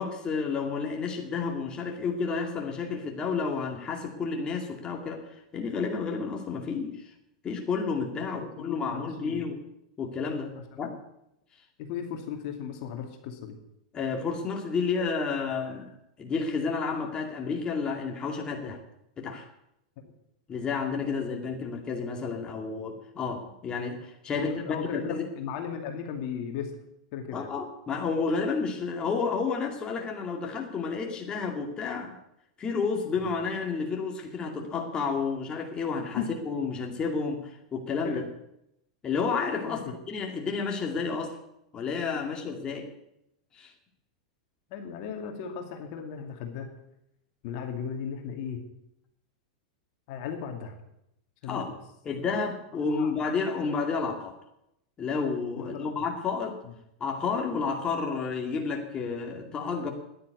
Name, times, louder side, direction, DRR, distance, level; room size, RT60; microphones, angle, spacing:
voice 1, 0.0-7.0 7.4-9.6 10.0-10.9 13.9-15.9 16.2-18.8 19.2-19.5 20.5-25.2 27.3-32.2 32.6-38.3 39.0-39.8 40.1-41.4 41.7-42.9 43.5-43.7 51.5-51.7 52.0-54.4 55.0-56.6 57.0-59.9, left 5 dB, 25° left, 1 dB, 2.4 m, -31 dB
voice 2, 8.3-9.4 10.7-10.8 11.8-13.5 20.0-20.1 24.3-26.7 27.1-27.5 36.2-36.3 38.0-38.2 39.6-40.0 44.7-46.7 47.4-48.6 50.1-50.8 51.4-51.8 52.8-53.1 55.6-56.1 56.7-56.8, left 7 dB, 55° left, 3 dB, 2.4 m, -36 dB
10.5 x 9.4 x 9.5 m, 0.83 s
hypercardioid pair, 120°, 4 cm